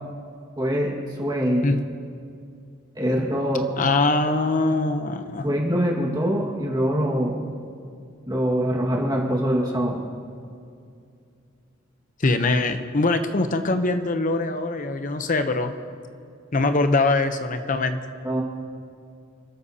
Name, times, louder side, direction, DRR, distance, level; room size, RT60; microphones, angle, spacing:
voice 1, 0.6-0.9 1.2-1.8 3.0-3.6 5.4-7.4 8.3-10.0 18.2-18.4, equal, 20° right, -2 dB, 1.8 m, -23 dB
voice 2, 3.8-5.5 12.2-15.7 16.5-18.0, left 2 dB, 40° left, 8 dB, 0.7 m, -22 dB
29.0 x 13.0 x 2.8 m, 2.4 s
head